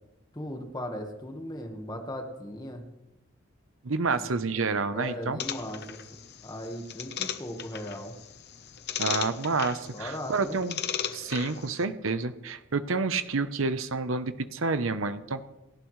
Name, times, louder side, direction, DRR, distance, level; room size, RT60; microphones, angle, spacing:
voice 1, 0.3-2.8 4.2-4.3 4.9-8.1 9.9-10.6, left 1 dB, 20° left, 3 dB, 1.4 m, -38 dB
voice 2, 3.8-5.4 9.0-10.8 11.1-15.5, right 4 dB, 80° right, 11 dB, 0.8 m, -29 dB
sound 1, 5.4-11.8, left 9 dB, 55° left, 0.9 m, -37 dB
28.5 x 11.5 x 3.2 m, 0.94 s
head